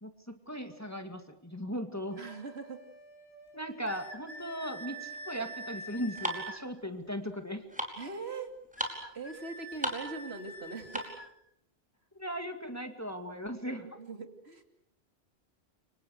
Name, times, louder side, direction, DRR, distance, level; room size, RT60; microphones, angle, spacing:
voice 1, 0.0-2.2 3.5-7.6 12.2-13.9, equal, 15° left, 6 dB, 2.2 m, -38 dB
sound 1, 2.1-6.5, right 1 dB, 85° left, 5.0 m, -56 dB
voice 2, 2.2-2.8 8.0-8.5 9.1-11.1 13.8-14.6, right 4 dB, 70° right, 6 dB, 3.0 m, -41 dB
sound 2, 3.9-6.6 8.8-11.3, right 3 dB, 45° left, 3.7 m, -45 dB
sound 3, 5.0-11.3, equal, 5° right, 4.8 m, -39 dB
30.0 x 25.0 x 6.6 m, 0.76 s
omnidirectional pair, 1.1 m